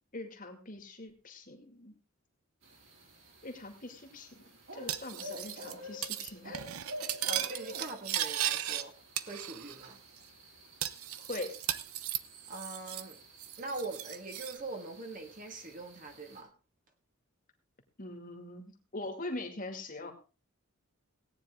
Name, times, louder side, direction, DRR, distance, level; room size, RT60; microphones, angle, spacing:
voice 1, 0.1-1.9 3.4-4.4 4.7-6.6 11.2-11.5 18.0-20.1, left 2 dB, 40° left, 5 dB, 2.2 m, -42 dB
sound 1, 2.6-16.4, equal, 60° right, 4.2 m, -50 dB
Cutlery silverware, 4.9-5.7 6.0-6.3 6.5-8.8 9.2-9.9 10.2-10.3 10.8-13.1 13.4-14.6, right 12 dB, 75° right, 0.8 m, -36 dB
voice 2, 7.0-8.9 9.3-10.0 12.5-13.2 13.6-16.5, right 2 dB, 35° right, 4 dB, 1.7 m, -42 dB
17.5 x 9.6 x 3.6 m, 0.33 s
head